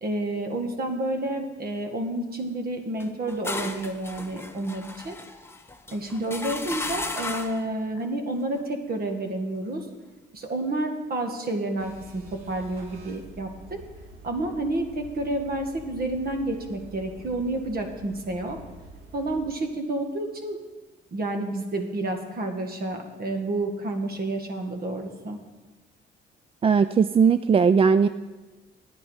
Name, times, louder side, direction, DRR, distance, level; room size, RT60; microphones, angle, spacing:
voice 1, 0.0-5.2 5.9-9.9 10.3-13.8 14.2-18.6 19.1-20.6 21.1-25.4, right 2 dB, 50° right, 5 dB, 1.8 m, -30 dB
sound 1, 3.0-7.7, left 2 dB, 10° left, 0.9 m, -35 dB
sound 2, 11.8-19.4, right 2 dB, 90° right, 1.8 m, -47 dB
voice 2, 26.6-28.1, right 6 dB, 30° right, 12 dB, 0.3 m, -18 dB
10.0 x 9.3 x 5.6 m, 1.2 s
cardioid pair, 90°, 20 cm